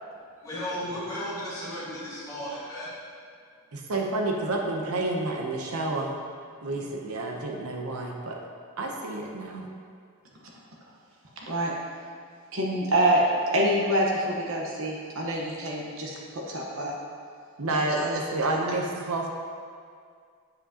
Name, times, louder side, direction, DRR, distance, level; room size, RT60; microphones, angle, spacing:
voice 1, 0.4-2.9, equal, 15° left, -8 dB, 1.8 m, -34 dB
voice 2, 3.7-6.2 6.6-8.4 8.8-9.7 17.6-19.3, right 2 dB, 80° right, 1 dB, 0.8 m, -29 dB
voice 3, 11.4-11.7 12.5-13.2 13.5-16.9 17.9-18.1, right 1 dB, 65° right, -2 dB, 1.1 m, -26 dB
7.9 x 7.5 x 2.9 m, 2.2 s
head